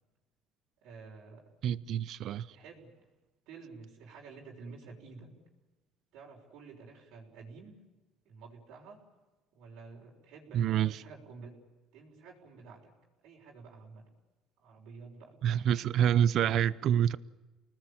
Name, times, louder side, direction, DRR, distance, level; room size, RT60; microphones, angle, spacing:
voice 1, 0.8-1.4 2.5-2.9 3.5-5.3 6.1-7.8 8.2-9.0 9.5-11.5 11.9-12.9 13.2-14.0 14.6-16.2, right 4 dB, 75° right, 6.4 m, -50 dB
voice 2, 1.6-2.5 10.5-11.0 15.4-17.2, right 9 dB, 55° right, 0.8 m, -27 dB
29.0 x 20.0 x 8.9 m
cardioid pair, 130°, 0 cm